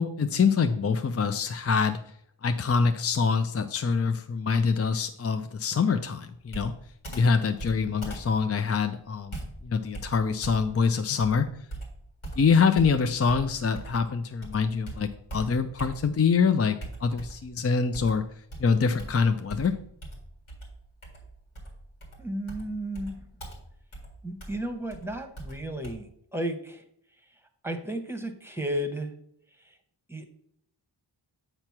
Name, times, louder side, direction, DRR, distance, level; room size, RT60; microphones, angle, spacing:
voice 1, 0.0-2.0 2.4-6.7 7.1-11.5 12.4-18.3 18.6-19.8, left 5 dB, 35° left, 8 dB, 0.4 m, -25 dB
Computer keyboard, 6.5-14.1 14.4-16.3 16.8-17.5 17.9-25.9, right 2 dB, 90° left, 1.9 m, -41 dB
voice 2, 22.2-23.2 24.2-26.8 27.6-29.1 29.6-29.7 30.1-30.2, right 1 dB, 5° right, 5 dB, 0.9 m, -33 dB
7.7 x 3.0 x 5.9 m, 0.69 s
wide cardioid pair, 55°, 47 cm